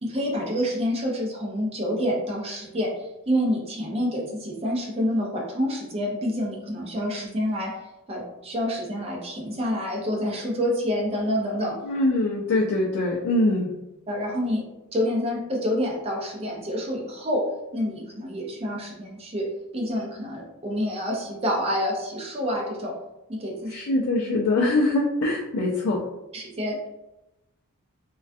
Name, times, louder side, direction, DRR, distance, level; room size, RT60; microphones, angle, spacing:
voice 1, 0.0-2.9 3.3-7.7 8.1-11.8 14.1-14.6 14.9-22.9 23.3-23.7 26.3-26.8, equal, 25° right, -2 dB, 0.5 m, -27 dB
voice 2, 11.8-13.7 23.7-26.0, left 2 dB, 70° left, -4 dB, 0.4 m, -23 dB
2.3 x 2.2 x 2.5 m, 0.92 s
head